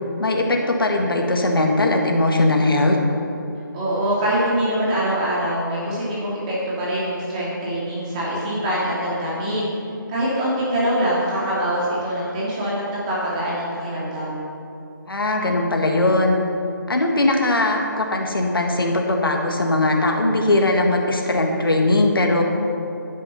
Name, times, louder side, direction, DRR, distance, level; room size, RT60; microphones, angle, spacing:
voice 1, 0.2-3.0 15.1-16.4 16.9-22.4, left 2 dB, 90° left, 1 dB, 1.8 m, -19 dB
voice 2, 3.7-9.7 10.1-14.4, right 1 dB, 20° right, -7 dB, 2.6 m, -24 dB
11.0 x 9.9 x 5.7 m, 2.9 s
figure-of-eight pair, 160°, 11 cm